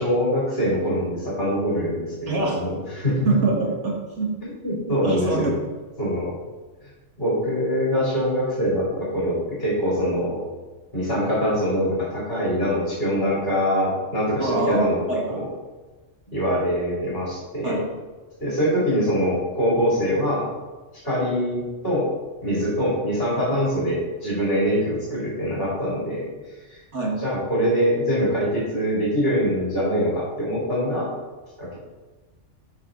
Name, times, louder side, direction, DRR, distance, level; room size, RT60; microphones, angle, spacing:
voice 1, 0.0-3.2 4.4-5.6 6.0-6.3 6.8-6.9 7.2-10.4 10.9-15.0 15.3-15.5 16.3-17.8 18.4-20.4 21.0-22.0 22.4-26.8 27.2-31.1 31.6-31.7, equal, 50° left, -8 dB, 3.1 m, -24 dB
voice 2, 2.3-2.6 3.2-4.3 5.0-5.5 14.4-15.4 17.6-17.9 26.9-27.2, right 3 dB, 65° right, -1 dB, 2.0 m, -24 dB
12.5 x 4.7 x 3.8 m, 1.3 s
omnidirectional pair, 1.3 m